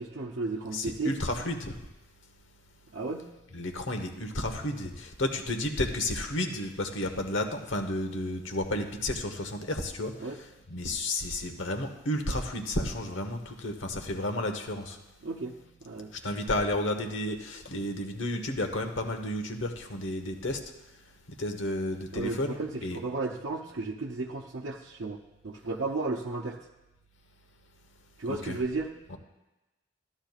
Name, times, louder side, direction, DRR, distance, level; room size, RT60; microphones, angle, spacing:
voice 1, 0.0-1.2 2.9-3.3 10.2-10.4 15.2-15.5 15.8-16.1 22.1-26.6 28.2-28.9, right 3 dB, 75° right, -3 dB, 0.7 m, -34 dB
voice 2, 0.7-1.8 3.5-10.1 10.7-15.0 16.2-20.6 21.4-22.5 22.8-23.0 28.3-28.6 29.1-29.2, left 1 dB, 85° left, 5 dB, 1.1 m, -32 dB
13.5 x 11.0 x 2.4 m, 1.0 s
head